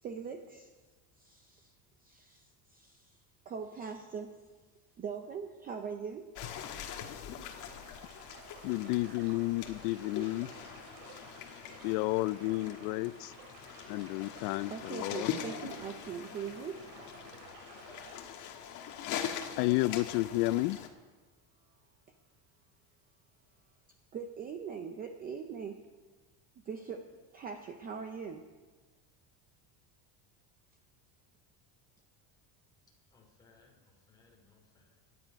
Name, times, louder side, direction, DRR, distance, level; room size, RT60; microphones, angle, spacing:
voice 1, 0.0-0.7 1.2-4.4 5.0-6.3 14.7-16.8 24.1-25.8 26.6-27.0 27.3-28.5, right 6 dB, 20° right, 0.5 m, -42 dB
sound 1, 6.4-20.9, left 8 dB, 40° left, 1.4 m, -42 dB
sound 2, 7.6-18.1, right 5 dB, 70° right, 3.3 m, -54 dB
voice 2, 8.6-10.5 11.8-13.3 13.9-15.3 19.6-20.8, left 19 dB, 85° left, 0.5 m, -31 dB
voice 3, 33.1-35.0, left 4 dB, 10° left, 2.6 m, -65 dB
22.0 x 9.7 x 5.2 m
cardioid pair, 180°, 45 cm